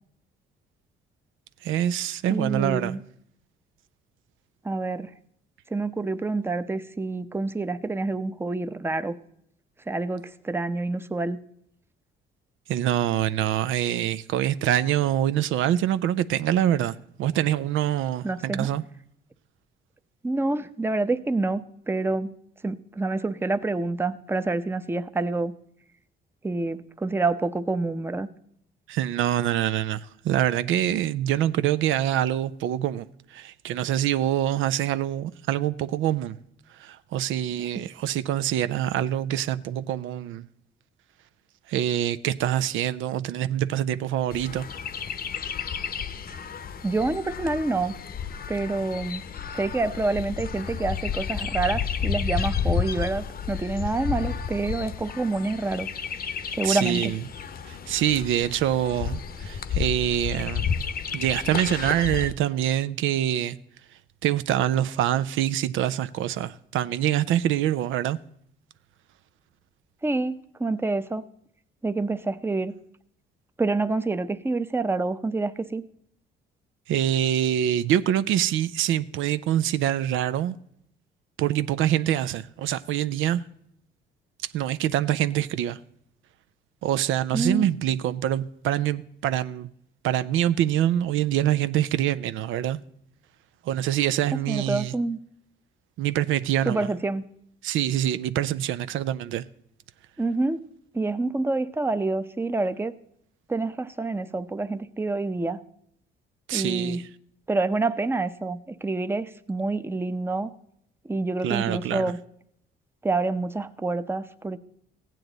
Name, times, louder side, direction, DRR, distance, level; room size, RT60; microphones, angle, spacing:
voice 1, 1.6-2.9 12.7-18.8 28.9-33.1 33.3-36.4 36.8-40.5 41.7-44.7 56.6-57.2 57.7-60.6 61.1-63.6 64.2-68.2 76.9-80.5 81.4-83.4 84.5-85.8 86.8-89.7 90.0-92.8 93.7-94.9 96.0-96.9 97.6-99.4 106.5-107.0 111.4-112.1, right 11 dB, 85° right, 0.5 m, -25 dB
voice 2, 2.3-3.0 4.6-5.1 5.7-9.2 9.9-11.4 18.2-18.7 20.2-22.3 22.6-25.5 26.4-28.3 37.6-37.9 46.8-47.9 48.5-49.2 49.5-56.2 56.6-57.1 70.0-71.2 71.8-72.7 73.6-75.8 87.3-87.7 94.5-95.2 96.6-97.2 100.2-100.6 100.9-102.9 103.5-105.6 106.5-107.0 107.5-110.5 111.1-112.2 113.0-114.6, right 3 dB, 10° right, 0.6 m, -27 dB
Chirp tweet, 44.3-62.3, left 7 dB, 50° left, 0.8 m, -31 dB
15.0 x 9.2 x 3.9 m
cardioid pair, 90°, 20 cm